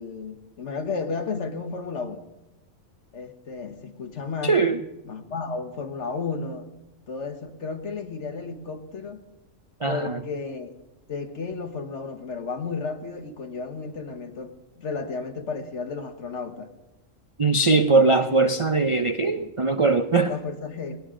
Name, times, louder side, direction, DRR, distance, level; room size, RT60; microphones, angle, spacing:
voice 1, 0.0-2.2 3.1-4.6 5.0-6.7 7.1-9.2 9.8-10.7 11.1-16.7 20.3-21.0, left 4 dB, 65° left, 7 dB, 1.6 m, -33 dB
voice 2, 4.4-4.8 9.8-10.2 17.4-20.3, right 3 dB, 45° right, 8 dB, 0.4 m, -21 dB
20.0 x 18.5 x 3.8 m, 0.96 s
omnidirectional pair, 1.3 m